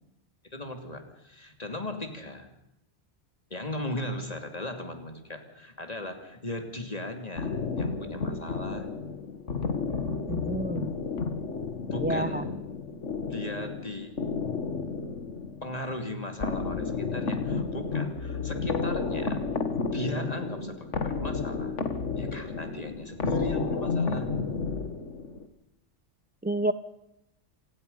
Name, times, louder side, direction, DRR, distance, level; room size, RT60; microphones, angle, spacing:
voice 1, 0.4-2.5 3.5-8.9 11.9-12.5 13.3-14.1 15.6-19.5 19.9-21.8 22.2-24.3, left 1 dB, 35° left, 5 dB, 2.9 m, -37 dB
sound 1, 7.4-25.5, left 4 dB, 90° left, 1.9 m, -32 dB
voice 2, 10.3-10.9 12.0-12.4 26.4-26.7, right 2 dB, 10° right, 12 dB, 0.5 m, -29 dB
27.0 x 18.5 x 5.6 m, 0.85 s
omnidirectional pair, 1.2 m